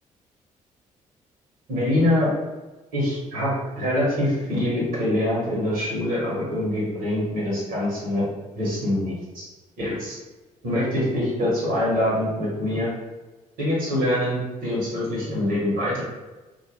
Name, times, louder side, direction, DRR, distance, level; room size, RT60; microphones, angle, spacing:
voice 1, 1.7-2.3 2.9-8.2 8.5-9.4 9.8-10.2 10.6-12.9 13.6-16.0, left 1 dB, 55° right, -6 dB, 1.1 m, -24 dB
2.2 x 2.1 x 3.1 m, 1.1 s
figure-of-eight pair, 45°, 19 cm